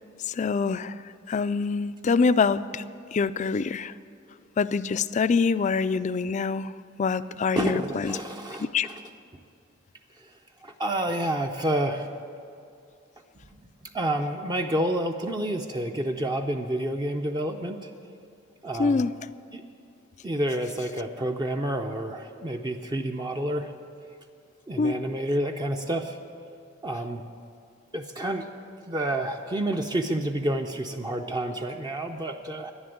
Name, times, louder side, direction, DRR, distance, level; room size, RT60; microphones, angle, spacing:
voice 1, 0.3-0.9 1.3-2.8 3.1-3.9 4.6-6.7 7.0-8.2 8.6-8.9 18.8-19.1 24.8-25.0, left 5 dB, 35° left, 14 dB, 0.3 m, -25 dB
voice 2, 7.6-9.0 10.6-12.1 13.9-17.9 18.6-19.1 19.5-19.6 20.2-23.7 24.7-26.2 26.8-27.2 27.9-28.5 28.9-32.7, right 1 dB, 20° right, 3 dB, 0.5 m, -29 dB
11.0 x 10.5 x 9.3 m, 2.5 s
head